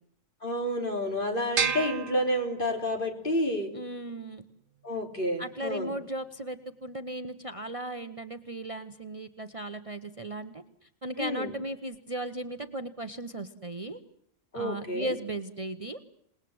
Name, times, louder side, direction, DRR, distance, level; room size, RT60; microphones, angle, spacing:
voice 1, 0.4-3.7 4.8-5.9 11.2-11.5 14.5-15.2, equal, 40° left, 3 dB, 3.9 m, -30 dB
sound 1, 1.6-3.0, right 6 dB, 80° right, 1.6 m, -31 dB
voice 2, 3.7-4.4 5.4-10.6 11.0-14.0 14.5-16.0, right 1 dB, 25° right, 9 dB, 1.1 m, -36 dB
27.5 x 20.0 x 8.0 m, 0.71 s
omnidirectional pair, 1.3 m